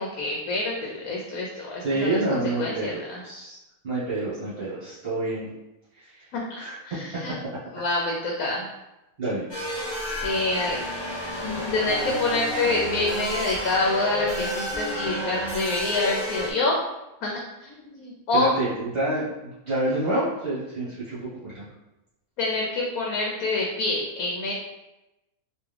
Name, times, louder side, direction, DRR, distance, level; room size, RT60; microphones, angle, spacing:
voice 1, 0.0-3.2 6.3-7.4 7.7-8.7 10.2-10.8 11.7-16.8 17.2-17.3 17.6-18.5 22.4-24.5, left 2 dB, 80° left, -2 dB, 1.1 m, -27 dB
voice 2, 1.8-3.6 3.8-5.5 6.0-6.1 6.6-6.7 9.2-9.5 18.3-19.2 19.7-21.6, right 2 dB, 45° right, -10 dB, 1.3 m, -27 dB
sound 1, 9.5-16.5, left 1 dB, 30° left, 0.5 m, -31 dB
3.5 x 2.7 x 3.2 m, 0.96 s
omnidirectional pair, 1.5 m